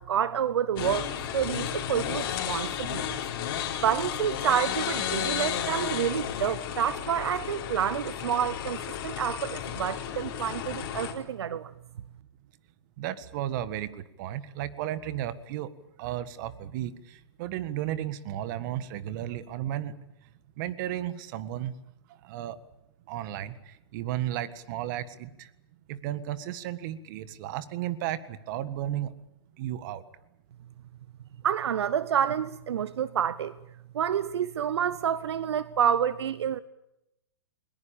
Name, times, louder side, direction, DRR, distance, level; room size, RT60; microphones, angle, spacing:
voice 1, 0.0-3.2 3.5-11.7 31.4-33.5 33.9-36.6, right 9 dB, 75° right, 17 dB, 0.9 m, -28 dB
sound 1, 0.8-11.1, left 10 dB, 50° left, 4.3 m, -33 dB
voice 2, 13.0-15.7 16.0-20.0 20.6-21.7 22.1-22.6 23.1-25.5 25.9-29.1 29.6-30.0, right 12 dB, 45° right, 14 dB, 1.7 m, -34 dB
20.5 x 20.5 x 8.8 m, 0.87 s
hypercardioid pair, 135°, 14 cm